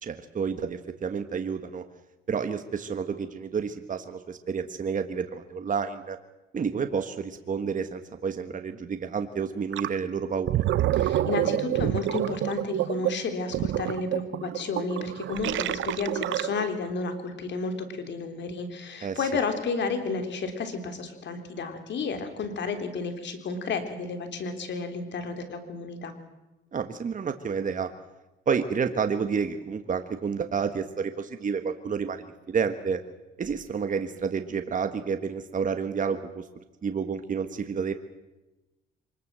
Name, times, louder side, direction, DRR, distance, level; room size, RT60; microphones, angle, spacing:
voice 1, 0.0-1.9 2.3-6.2 6.5-10.6 19.0-19.3 26.7-27.9 28.5-33.0 33.4-36.5 36.8-37.9, right 6 dB, 40° right, 8 dB, 1.5 m, -30 dB
Gurgling, 9.7-10.0 10.3-16.8, right 13 dB, 75° right, 0.8 m, -28 dB
voice 2, 10.9-26.1, left 4 dB, 65° left, 8 dB, 3.5 m, -32 dB
24.5 x 20.5 x 7.6 m, 1.0 s
cardioid pair, 90°, 20 cm